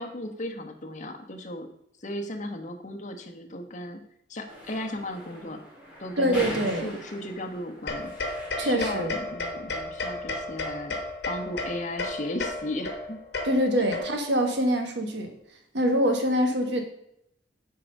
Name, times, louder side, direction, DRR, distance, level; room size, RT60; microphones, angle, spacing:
voice 1, 0.0-1.7 2.0-4.0 4.3-5.6 6.0-8.1 8.6-11.0 11.3-13.2 13.8-13.9, left 1 dB, 40° left, 4 dB, 1.2 m, -35 dB
sound 1, 4.5-9.0, equal, 10° right, 3.1 m, -42 dB
voice 2, 6.2-6.9 8.6-9.2 13.4-15.3 15.7-16.8, equal, 70° right, 4 dB, 1.6 m, -24 dB
sound 2, 7.9-14.4, left 2 dB, 60° left, 1.4 m, -33 dB
9.5 x 4.8 x 5.3 m, 0.75 s
head